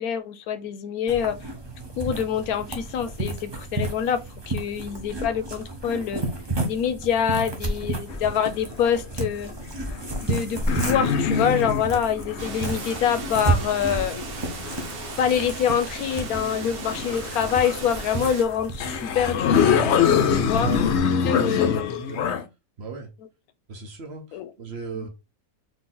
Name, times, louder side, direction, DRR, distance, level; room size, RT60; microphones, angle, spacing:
voice 1, 0.0-1.4 2.0-4.2 4.5-6.2 6.6-9.5 10.2-14.6 15.2-19.6 20.3-20.7 21.2-22.0 24.3-24.5 24.9-25.1, left 8 dB, 80° left, 1.1 m, -25 dB
sound 1, 1.1-21.0, right 2 dB, 20° right, 0.8 m, -32 dB
sound 2, 8.1-9.0 9.8-15.2 16.1-17.9 18.5-18.6 18.8-22.4, left 7 dB, 60° left, 0.8 m, -25 dB
Water, 12.4-18.4, right 5 dB, 75° right, 1.2 m, -38 dB
voice 2, 20.4-21.5 22.1-22.4 22.8-23.1 23.7-25.1, right 4 dB, 50° right, 1.0 m, -36 dB
4.2 x 2.8 x 3.8 m
omnidirectional pair, 1.6 m